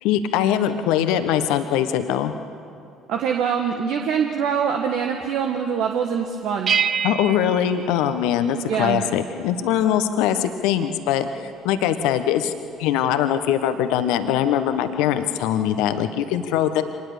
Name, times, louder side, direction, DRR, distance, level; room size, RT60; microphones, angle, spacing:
voice 1, 0.0-2.3 7.0-11.3 11.6-12.5 12.8-16.8, left 10 dB, 65° left, 9 dB, 1.2 m, -22 dB
voice 2, 3.1-6.8 8.7-9.0, right 7 dB, 60° right, 3 dB, 1.5 m, -24 dB
sound 1, 6.7-8.9, right 8 dB, 45° right, 0.5 m, -27 dB
25.5 x 20.0 x 6.7 m, 2.4 s
figure-of-eight pair, 55°, 0 cm